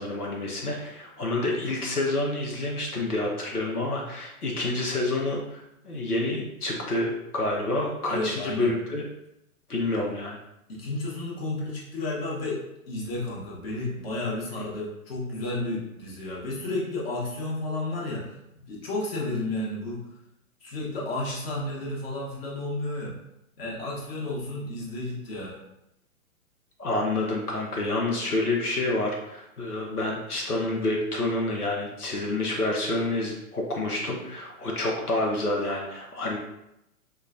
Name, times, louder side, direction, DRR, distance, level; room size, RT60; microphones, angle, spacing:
voice 1, 0.0-9.1 9.7-10.4 26.8-36.4, left 2 dB, 90° left, -1 dB, 0.8 m, -28 dB
voice 2, 8.1-8.7 10.7-20.0 20.6-23.1 23.6-25.6, left 2 dB, 40° left, -4 dB, 1.1 m, -32 dB
4.7 x 2.2 x 2.4 m, 0.84 s
figure-of-eight pair, 120°, 44 cm